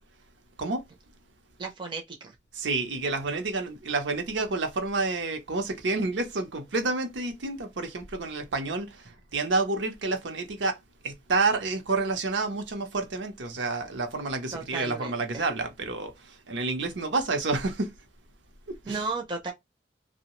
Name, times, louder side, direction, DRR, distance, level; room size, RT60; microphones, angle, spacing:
voice 1, 1.6-2.4 14.5-15.4 18.9-19.5, right 3 dB, 25° right, 0.5 m, -34 dB
voice 2, 2.5-10.8 11.0-17.9 18.7-19.1, right 3 dB, 80° right, 0.6 m, -29 dB
2.7 x 2.1 x 2.9 m
head